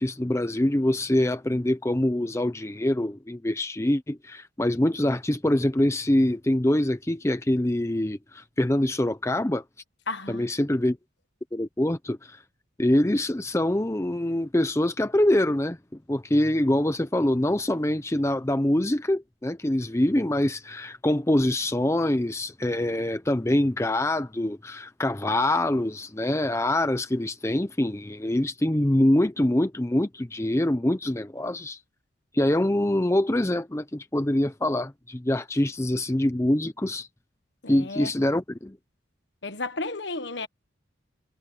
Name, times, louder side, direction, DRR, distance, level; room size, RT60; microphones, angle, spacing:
voice 1, 0.0-9.6 10.3-11.0 11.5-12.4 12.8-15.8 16.1-31.8 32.3-37.1 37.7-38.8, left 1 dB, 15° left, 0.6 m, -24 dB
voice 2, 10.1-10.5 37.6-38.1 39.4-40.5, left 3 dB, 60° left, 1.4 m, -33 dB
head